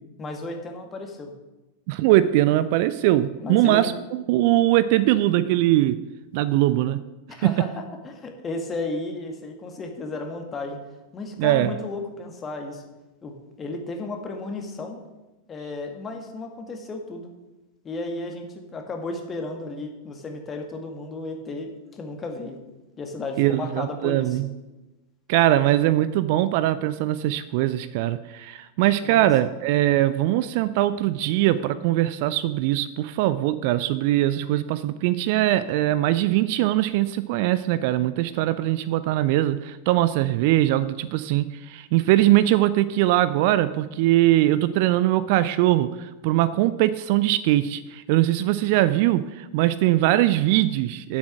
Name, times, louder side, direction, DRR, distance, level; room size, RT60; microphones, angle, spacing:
voice 1, 0.2-1.3 3.4-3.9 7.3-10.8 11.1-12.8 13.2-15.0 15.5-17.3 17.8-22.6 23.0-24.4 29.0-29.5, left 2 dB, 20° left, 3 dB, 1.8 m, -34 dB
voice 2, 1.9-6.0 6.3-7.0 11.4-11.7 23.4-24.5 25.3-51.2, right 14 dB, 50° right, 15 dB, 0.4 m, -21 dB
9.6 x 7.6 x 5.9 m, 1.1 s
figure-of-eight pair, 90°, 0 cm